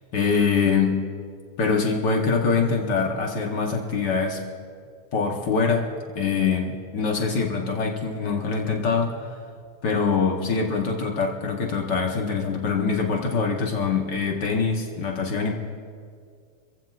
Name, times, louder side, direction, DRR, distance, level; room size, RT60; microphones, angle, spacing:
voice 1, 0.1-1.0 1.6-4.4 5.1-5.9 6.1-9.1 9.8-15.5, left 5 dB, 60° left, 1 dB, 1.1 m, -24 dB
28.5 x 15.0 x 2.5 m, 2.1 s
omnidirectional pair, 3.4 m